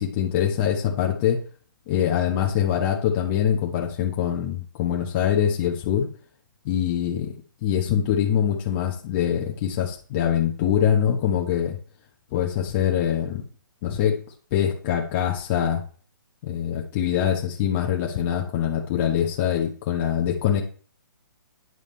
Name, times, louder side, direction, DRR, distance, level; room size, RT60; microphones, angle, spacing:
voice 1, 0.0-1.4 1.9-6.1 6.6-7.3 7.6-11.8 12.3-13.4 13.8-14.2 14.5-15.8 16.4-20.6, left 9 dB, 35° left, 0 dB, 1.2 m, -24 dB
9.4 x 5.1 x 3.3 m, 0.42 s
hypercardioid pair, 145°, 11 cm